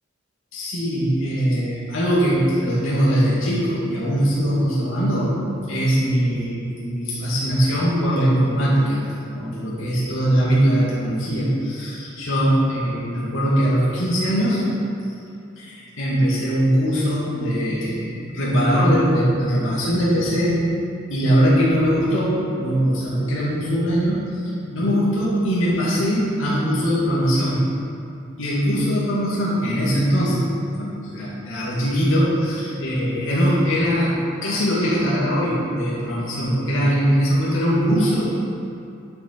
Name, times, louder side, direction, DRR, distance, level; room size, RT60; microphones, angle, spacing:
voice 1, 0.5-5.4 5.7-9.0 9.3-14.7 15.6-20.7 21.1-27.7 28.4-30.5 30.8-38.3, equal, 80° left, -8 dB, 2.3 m, -21 dB
10.5 x 6.4 x 4.7 m, 2.7 s
head